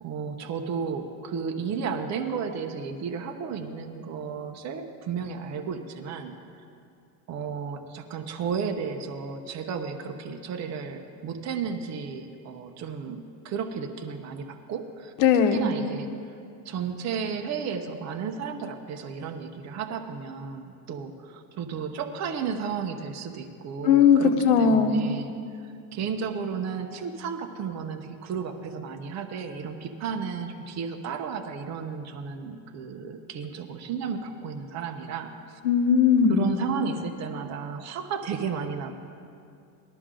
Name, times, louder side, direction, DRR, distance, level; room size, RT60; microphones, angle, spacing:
voice 1, 0.0-6.6 7.3-15.1 15.5-16.1 16.6-25.3 25.9-35.6 36.3-38.9, right 6 dB, 40° right, 5 dB, 1.0 m, -33 dB
voice 2, 15.2-15.7 23.8-25.0 35.6-36.5, left 6 dB, 65° left, 6 dB, 1.3 m, -19 dB
18.5 x 13.0 x 3.8 m, 2.4 s
cardioid pair, 140°, 43 cm